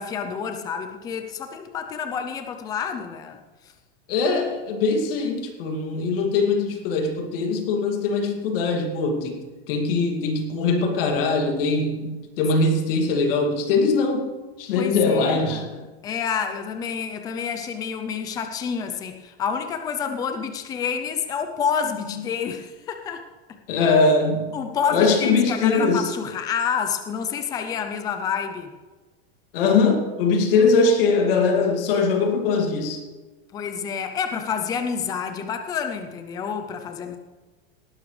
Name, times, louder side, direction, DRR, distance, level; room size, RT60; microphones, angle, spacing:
voice 1, 0.0-3.4 14.7-23.2 24.5-28.7 33.5-37.2, left 7 dB, 10° left, 6 dB, 0.5 m, -28 dB
voice 2, 4.1-9.4 9.7-14.3 14.6-15.7 23.7-24.6 24.9-26.1 29.5-33.0, left 4 dB, 60° left, 3 dB, 2.4 m, -21 dB
18.5 x 11.0 x 3.3 m, 1.2 s
supercardioid pair, 170°, 31 cm